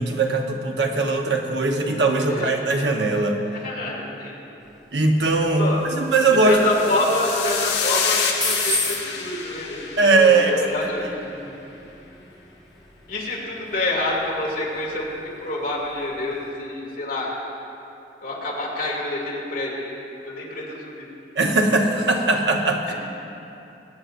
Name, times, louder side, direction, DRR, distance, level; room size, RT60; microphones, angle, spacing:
voice 1, 0.0-3.4 4.9-6.6 10.0-10.5 21.4-22.9, right 3 dB, 85° right, 2 dB, 1.1 m, -20 dB
voice 2, 3.5-4.3 5.6-5.8 6.4-11.8 13.1-17.3 18.2-20.0 20.2-21.1 22.9-23.0, left 2 dB, 55° left, -4 dB, 2.5 m, -27 dB
sound 1, 4.6-16.5, left 2 dB, 5° left, 1.5 m, -36 dB
sound 2, 6.3-10.8, left 6 dB, 70° left, 1.4 m, -28 dB
22.0 x 8.9 x 2.6 m, 2.9 s
head